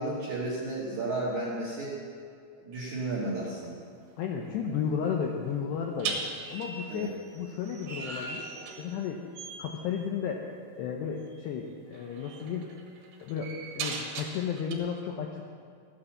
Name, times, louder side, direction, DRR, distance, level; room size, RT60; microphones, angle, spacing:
voice 1, 0.0-1.9 2.6-3.8 6.9-7.1, right 2 dB, 60° right, -6 dB, 2.0 m, -33 dB
sound 1, 3.4-3.7 6.0-9.1 9.3-9.8 11.3-11.4 11.9-14.8, right 4 dB, 75° right, 4.0 m, -38 dB
voice 2, 4.2-6.2 6.5-7.1 7.3-8.5 8.8-9.2 9.6-12.7 13.2-15.4, left 7 dB, 80° left, 1 dB, 2.5 m, -33 dB
14.5 x 9.7 x 7.2 m, 2.3 s
omnidirectional pair, 5.9 m